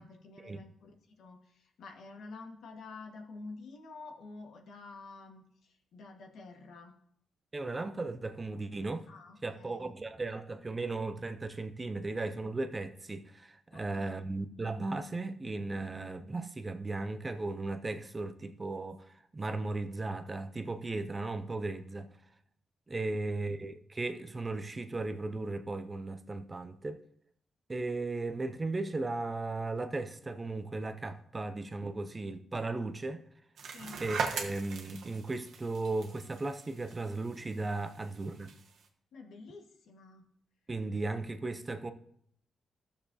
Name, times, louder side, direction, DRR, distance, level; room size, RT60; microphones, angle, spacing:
voice 1, 0.0-6.9 9.1-9.9 13.7-14.2 23.0-23.4 33.7-34.0 39.1-40.3, left 3 dB, 80° left, 1.4 m, -49 dB
voice 2, 7.5-9.1 9.4-22.1 22.9-27.0 27.7-33.2 34.0-38.5 40.7-41.9, right 2 dB, 20° right, 0.5 m, -36 dB
sound 1, 33.6-38.8, right 5 dB, 80° right, 1.1 m, -40 dB
15.5 x 6.7 x 2.7 m
wide cardioid pair, 160°, 0 cm